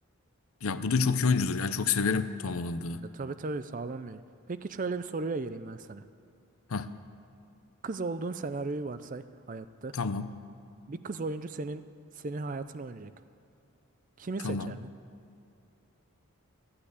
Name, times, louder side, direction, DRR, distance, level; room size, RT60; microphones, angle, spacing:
voice 1, 0.6-3.0 6.7-6.9 9.9-10.3 14.4-14.7, left 5 dB, 75° left, 12 dB, 0.6 m, -28 dB
voice 2, 3.0-4.2 4.5-6.0 7.8-9.9 10.9-11.8 12.1-13.1 14.2-14.9, right 3 dB, 35° right, 12 dB, 0.4 m, -36 dB
14.5 x 8.8 x 8.1 m, 2.7 s
head